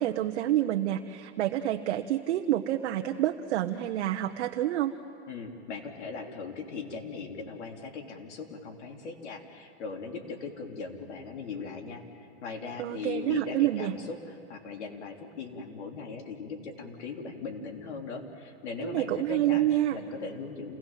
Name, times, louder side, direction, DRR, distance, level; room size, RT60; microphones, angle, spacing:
voice 1, 0.0-4.9 12.8-13.9 18.8-20.0, right 13 dB, 75° right, 4 dB, 1.1 m, -28 dB
voice 2, 5.3-20.8, left 4 dB, 85° left, 2 dB, 3.5 m, -39 dB
28.5 x 19.0 x 7.5 m, 2.8 s
supercardioid pair, 140°, 34 cm